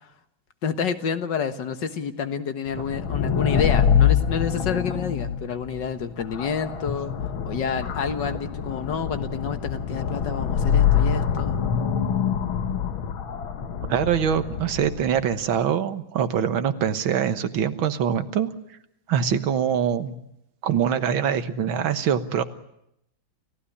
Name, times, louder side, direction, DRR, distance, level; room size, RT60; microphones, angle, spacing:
voice 1, 0.6-7.2 7.5-11.6, left 6 dB, 65° left, 9 dB, 2.0 m, -29 dB
sound 1, 2.7-15.3, left 8 dB, 85° left, 2.2 m, -25 dB
voice 2, 13.9-18.5 19.1-20.2 20.6-22.4, right 8 dB, 85° right, 10 dB, 2.1 m, -24 dB
30.0 x 15.5 x 9.9 m, 0.80 s
omnidirectional pair, 2.2 m